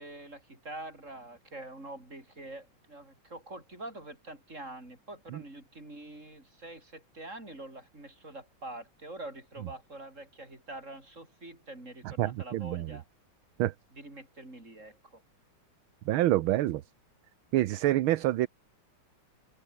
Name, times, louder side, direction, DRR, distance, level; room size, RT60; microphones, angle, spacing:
voice 1, 0.0-13.0 13.9-15.2, right 2 dB, 35° right, 7.5 m, -45 dB
voice 2, 12.0-13.0 13.6-13.7 16.1-16.8 17.5-18.5, right 15 dB, 75° right, 1.6 m, -27 dB
omnidirectional pair, 2.3 m